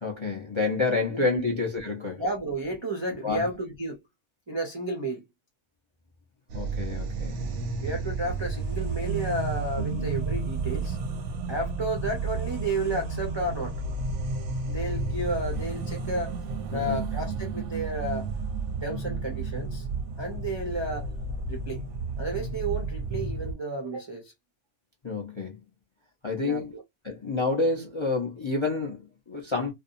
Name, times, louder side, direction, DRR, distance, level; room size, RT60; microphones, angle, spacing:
voice 1, 0.0-2.2 3.2-3.4 6.5-7.9 9.9-10.1 16.7-17.1 25.0-25.6 26.2-26.7 27.0-29.7, left 3 dB, 35° left, 0.5 m, -29 dB
voice 2, 2.2-4.0 4.5-5.2 7.8-11.0 11.5-13.8 14.7-16.4 16.7-18.3 18.8-19.9 20.2-21.1 21.5-21.8 22.2-24.3 26.4-26.8, right 2 dB, 35° right, 0.4 m, -32 dB
sound 1, 6.5-23.5, right 3 dB, 70° right, 0.8 m, -32 dB
2.6 x 2.2 x 2.5 m
omnidirectional pair, 1.4 m